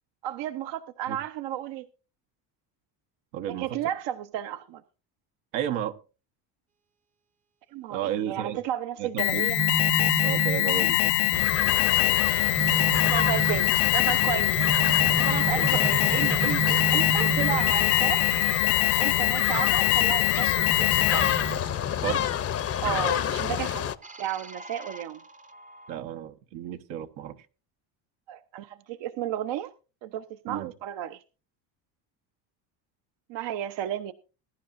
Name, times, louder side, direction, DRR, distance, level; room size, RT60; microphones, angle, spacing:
voice 1, 0.2-1.9 3.5-4.8 7.7-9.6 13.0-14.7 15.2-18.4 18.8-21.3 22.8-23.9 24.2-25.2 28.3-29.7 30.0-31.2 33.3-34.1, right 11 dB, 65° right, 11 dB, 0.8 m, -33 dB
voice 2, 3.3-3.8 5.5-5.9 7.9-8.6 9.0-9.5 10.2-11.5 15.5-15.7 16.1-16.2 22.0-22.2 25.9-27.4 30.5-30.7, right 10 dB, 80° right, 6 dB, 1.3 m, -33 dB
Alarm, 9.2-21.6, left 19 dB, 80° left, 0.6 m, -23 dB
sound 1, 9.6-18.6 20.6-22.5 24.0-26.0, right 5 dB, 15° right, 0.6 m, -33 dB
sound 2, 11.3-23.9, left 9 dB, 30° left, 0.6 m, -31 dB
20.5 x 10.5 x 2.5 m, 0.33 s
cardioid pair, 105°, 47 cm